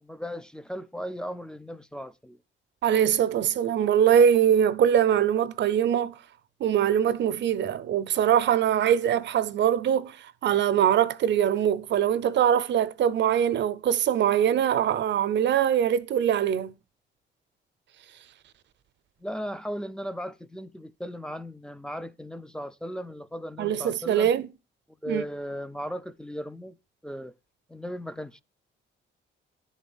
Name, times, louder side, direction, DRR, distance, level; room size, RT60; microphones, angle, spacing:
voice 1, 0.0-2.4 19.2-24.3 25.0-26.8 27.0-27.3 27.7-28.4, equal, 5° left, 0.5 m, -36 dB
voice 2, 2.8-6.2 6.6-16.8 23.6-24.5 25.1-25.2, right 9 dB, 65° right, 0.7 m, -23 dB
11.0 x 4.2 x 7.1 m
cardioid pair, 90°, 20 cm